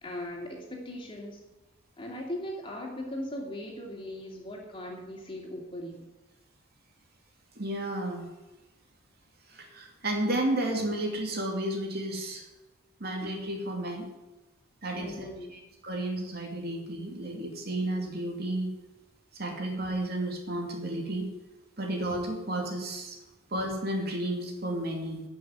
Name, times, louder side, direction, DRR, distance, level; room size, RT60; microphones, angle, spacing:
voice 1, 0.0-1.4 2.0-6.0 14.9-15.6, left 1 dB, 25° left, -1 dB, 2.8 m, -39 dB
voice 2, 7.6-8.3 9.5-12.4 13.0-14.1 14.8-18.7 19.3-21.3 21.8-23.2 23.5-25.2, right 1 dB, 50° right, 1 dB, 2.7 m, -32 dB
14.0 x 6.2 x 9.8 m, 1.1 s
head